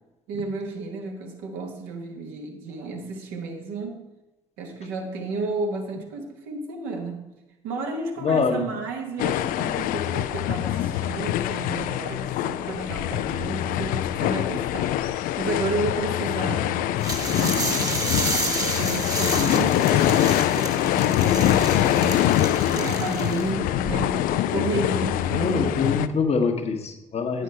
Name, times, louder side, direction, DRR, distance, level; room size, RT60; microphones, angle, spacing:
voice 1, 0.3-4.0 4.6-7.3 7.6-25.9 27.3-27.4, right 3 dB, 65° right, 2 dB, 1.2 m, -32 dB
voice 2, 8.2-8.6 19.4-19.7 25.4-27.4, left 5 dB, 40° left, 6 dB, 1.0 m, -25 dB
sound 1, 9.2-26.1, left 12 dB, 55° left, 0.4 m, -24 dB
sound 2, 17.0-23.5, right 2 dB, 20° right, 1.2 m, -30 dB
9.3 x 5.7 x 4.4 m, 1.0 s
figure-of-eight pair, 45°, 17 cm